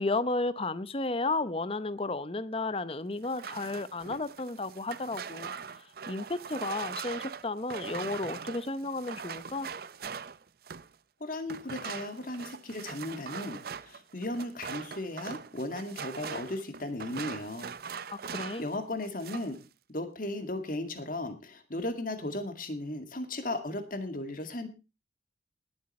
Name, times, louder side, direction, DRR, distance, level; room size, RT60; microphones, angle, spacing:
voice 1, 0.0-5.5 6.1-9.7 18.1-18.6, left 2 dB, 30° left, 0.7 m, -33 dB
sound 1, 3.2-11.0 11.5-18.7 19.0-19.6, right 6 dB, 55° right, 0.6 m, -41 dB
voice 2, 11.2-17.7 18.6-19.6 19.9-24.7, left 1 dB, 45° left, 2.1 m, -36 dB
19.5 x 7.9 x 4.2 m
head